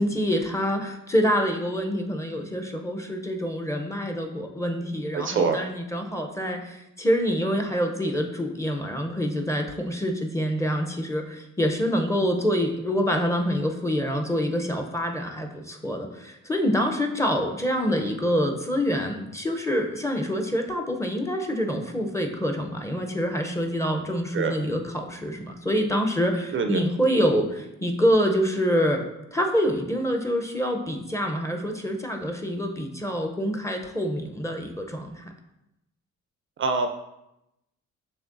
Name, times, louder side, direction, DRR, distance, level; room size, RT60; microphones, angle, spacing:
voice 1, 0.0-29.0 29.3-35.2, equal, 10° left, 3 dB, 0.6 m, -26 dB
voice 2, 5.1-5.6 24.3-24.6 26.5-26.8 36.6-36.9, right 5 dB, 40° right, 6 dB, 0.4 m, -24 dB
6.2 x 3.2 x 2.5 m, 0.88 s
cardioid pair, 90°, 30 cm